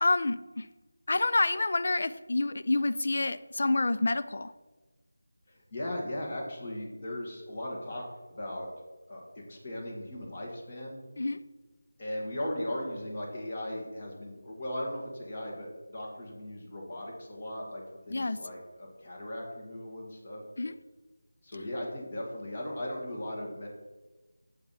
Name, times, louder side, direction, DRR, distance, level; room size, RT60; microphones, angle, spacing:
voice 1, 0.0-0.7 1.1-4.5 11.2-11.4 18.1-18.4 20.6-20.7, left 2 dB, 50° left, 12 dB, 0.5 m, -28 dB
voice 2, 5.5-8.7 9.1-9.2 9.5-11.0 12.0-20.4 21.4-23.7, left 1 dB, 35° left, -1 dB, 2.1 m, -38 dB
7.3 x 5.7 x 5.6 m, 1.2 s
figure-of-eight pair, 165°, 0 cm